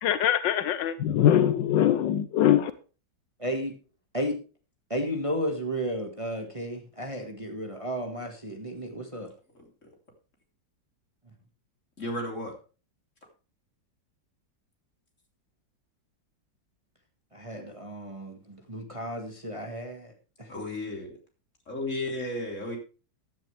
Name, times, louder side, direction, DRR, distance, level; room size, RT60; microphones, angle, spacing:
voice 1, 0.0-2.7, left 10 dB, 80° left, 13 dB, 1.4 m, -22 dB
voice 2, 3.4-3.7 4.1-4.4 4.9-9.3 17.3-20.1 20.4-20.5, equal, 20° right, 4 dB, 1.7 m, -33 dB
voice 3, 12.0-12.5 20.5-21.1 21.7-22.8, left 1 dB, 40° left, 1 dB, 3.9 m, -33 dB
14.5 x 10.5 x 3.3 m, 0.34 s
omnidirectional pair, 2.0 m